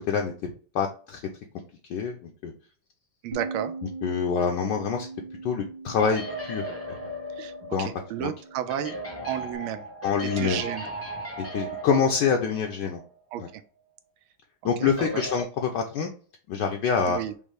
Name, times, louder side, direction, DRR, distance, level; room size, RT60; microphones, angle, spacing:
voice 1, 0.1-1.2 1.9-2.5 4.0-5.1 5.4-6.6 7.0-7.1 7.7-7.9 8.2-8.3 10.0-10.6 11.5-13.0 13.4-13.5 14.6-16.1 16.5-17.2, left 6 dB, 75° left, 3 dB, 1.0 m, -26 dB
voice 2, 3.2-3.7 7.4-7.5 7.8-8.9 9.2-9.9 10.2-10.9 13.3-13.6 14.8-15.2 17.1-17.3, right 11 dB, 85° right, 10 dB, 1.4 m, -32 dB
Bass guitar, 3.3-9.6, right 4 dB, 60° right, 1.9 m, -41 dB
sound 1, 5.9-13.1 13.3-13.4 15.0-15.4, right 1 dB, 15° left, 0.5 m, -37 dB
5.4 x 2.0 x 4.7 m, 0.42 s
omnidirectional pair, 2.3 m